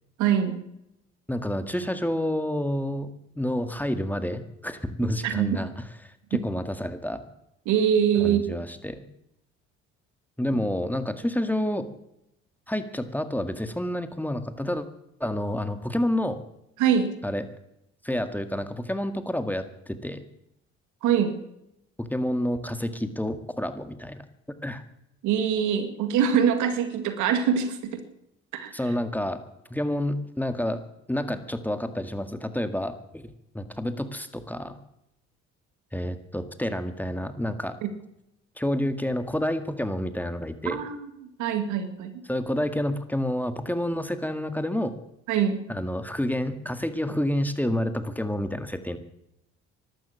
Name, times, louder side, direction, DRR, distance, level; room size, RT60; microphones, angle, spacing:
voice 1, 0.2-0.6 5.2-5.6 7.7-8.5 16.8-17.1 21.0-21.3 25.2-28.0 28.5-28.7 37.8-37.9 40.7-41.0 41.4-42.2 45.3-45.6, right 8 dB, 75° right, 9 dB, 2.0 m, -23 dB
voice 2, 1.3-3.1 3.4-5.9 6.3-7.2 8.2-9.0 10.4-11.9 12.7-14.9 15.2-16.4 17.2-17.5 18.0-20.3 22.0-24.2 24.6-24.8 28.7-29.4 29.7-30.8 31.1-33.3 33.5-34.8 35.9-37.8 38.6-40.8 42.3-44.9 45.7-49.0, left 1 dB, 5° left, 9 dB, 1.9 m, -29 dB
14.0 x 12.0 x 7.5 m, 0.81 s
hypercardioid pair, 60°, 30 cm